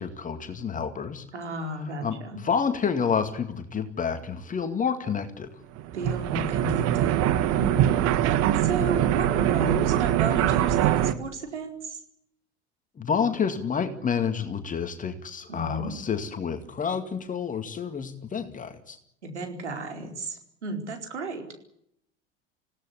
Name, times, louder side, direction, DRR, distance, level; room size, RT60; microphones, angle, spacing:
voice 1, 0.0-1.3 1.8-5.5 13.0-19.0, left 6 dB, 25° left, 7 dB, 2.2 m, -29 dB
voice 2, 1.3-2.4 5.9-7.2 7.6-8.0 8.6-12.0 15.5-15.9 19.2-21.5, right 3 dB, 80° right, 4 dB, 4.5 m, -33 dB
sound 1, 5.8-11.1, right 11 dB, 45° right, 1.8 m, -23 dB
27.0 x 17.0 x 8.4 m, 0.75 s
figure-of-eight pair, 75°, 34 cm